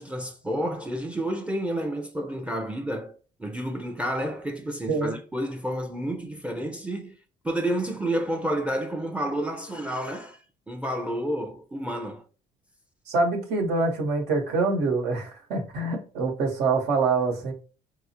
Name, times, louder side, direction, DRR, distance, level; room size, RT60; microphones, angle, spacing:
voice 1, 0.0-3.1 3.4-7.1 7.4-10.4 10.7-12.2, right 1 dB, 5° right, 0.5 m, -30 dB
voice 2, 13.1-17.5, right 3 dB, 80° right, 1.1 m, -25 dB
4.6 x 2.1 x 2.8 m
cardioid pair, 110°, 17 cm